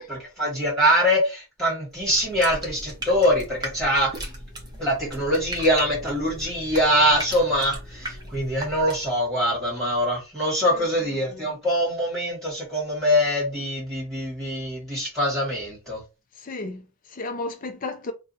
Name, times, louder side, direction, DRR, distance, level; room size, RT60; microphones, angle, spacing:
voice 1, 0.1-4.3 4.8-16.0, equal, ahead, 1.6 m, -23 dB
sound 1, 1.9-9.2, right 1 dB, 20° right, 0.7 m, -38 dB
voice 2, 16.4-18.1, left 2 dB, 40° left, 0.5 m, -34 dB
2.7 x 2.3 x 4.1 m
head